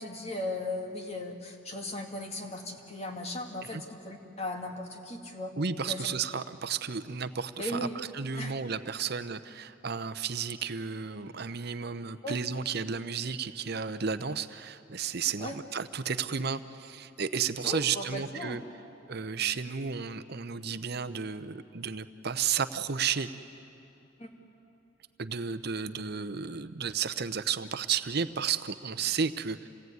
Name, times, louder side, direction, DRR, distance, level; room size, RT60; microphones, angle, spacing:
voice 1, 0.0-5.5 5.9-6.1 7.6-8.0 8.4-8.8 12.2-12.4 15.4-15.6 17.6-18.6 24.2-24.3, left 1 dB, 30° left, 3 dB, 2.1 m, -37 dB
voice 2, 5.6-18.6 19.1-23.3 25.2-29.7, right 6 dB, 55° right, 12 dB, 0.8 m, -33 dB
27.5 x 17.5 x 9.4 m, 2.9 s
head